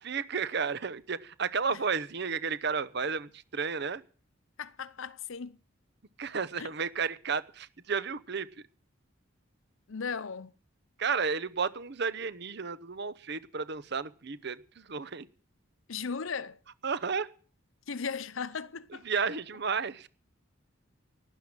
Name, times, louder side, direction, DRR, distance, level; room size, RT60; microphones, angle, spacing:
voice 1, 0.0-4.0 6.2-8.5 11.0-15.3 16.8-17.3 19.0-20.1, right 5 dB, 55° right, 0.9 m, -32 dB
voice 2, 4.6-5.6 6.6-6.7 9.9-10.5 15.9-16.6 17.9-19.1, left 5 dB, 75° left, 0.7 m, -37 dB
12.5 x 10.0 x 8.9 m
head